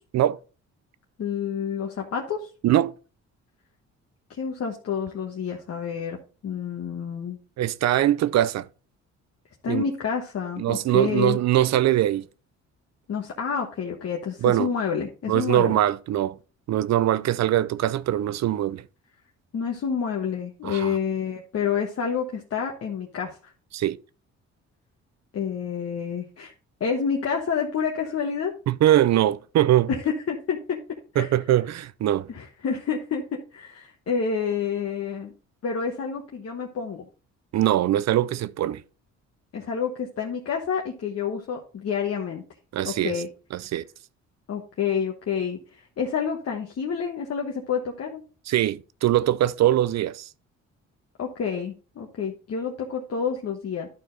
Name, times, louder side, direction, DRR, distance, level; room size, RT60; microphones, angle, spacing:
voice 1, 1.2-2.5 4.3-6.2 6.4-7.4 9.6-11.4 13.1-15.8 19.5-23.5 25.3-26.5 26.8-28.5 29.9-30.8 31.1-31.3 32.3-35.3 35.6-37.1 39.5-42.4 42.8-43.3 44.5-48.2 51.2-53.9, left 6 dB, 55° left, 1.3 m, -29 dB
voice 2, 7.6-8.7 9.7-9.8 10.6-12.3 14.4-14.7 15.3-16.4 16.7-18.8 20.6-21.0 23.7-24.0 28.7-29.9 31.2-32.3 37.5-38.8 42.7-43.2 43.5-43.8 48.5-50.3, right 13 dB, 60° right, 0.6 m, -22 dB
11.5 x 4.5 x 3.9 m
cardioid pair, 90°, 30 cm